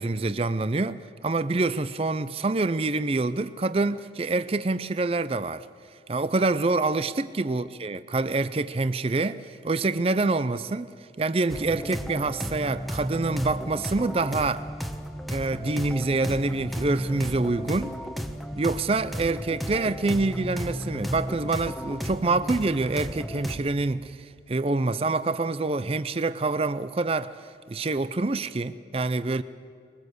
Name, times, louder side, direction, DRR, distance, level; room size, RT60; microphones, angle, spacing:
voice 1, 0.0-5.7 6.1-10.9 11.2-14.6 15.3-18.0 18.6-29.4, right 3 dB, 35° right, 0.5 m, -26 dB
sound 1, 11.5-23.6, equal, ahead, 1.1 m, -34 dB
22.0 x 21.0 x 8.0 m
head